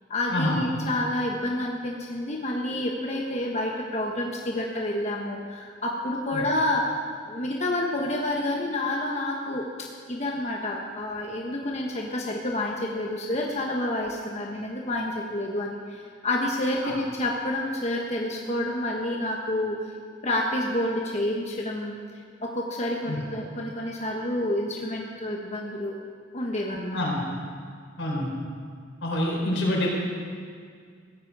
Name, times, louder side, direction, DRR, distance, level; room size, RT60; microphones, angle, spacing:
voice 1, 0.1-6.9 7.3-19.9 20.2-22.0 22.4-26.0 26.3-27.0, left 1 dB, 35° left, -1 dB, 1.3 m, -29 dB
voice 2, 28.0-28.3 29.0-29.9, left 1 dB, 85° left, -2 dB, 4.4 m, -26 dB
16.5 x 14.0 x 4.9 m, 2.1 s
head